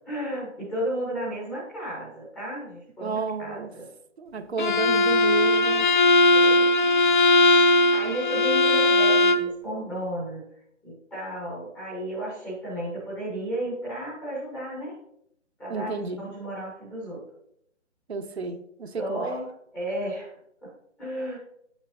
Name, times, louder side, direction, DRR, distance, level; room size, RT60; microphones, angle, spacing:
voice 1, 0.0-3.9 6.3-6.7 7.9-10.4 10.8-15.0 15.6-15.9 16.2-17.2 19.0-20.4 20.6-20.7 21.0-21.4, right 1 dB, 5° left, 0.7 m, -33 dB
voice 2, 3.0-3.7 4.2-5.9 15.7-16.2 18.1-19.3, right 4 dB, 60° right, 0.8 m, -32 dB
Bowed string instrument, 4.6-9.5, left 2 dB, 40° left, 0.5 m, -19 dB
8.2 x 7.4 x 2.5 m
figure-of-eight pair, 150°, 36 cm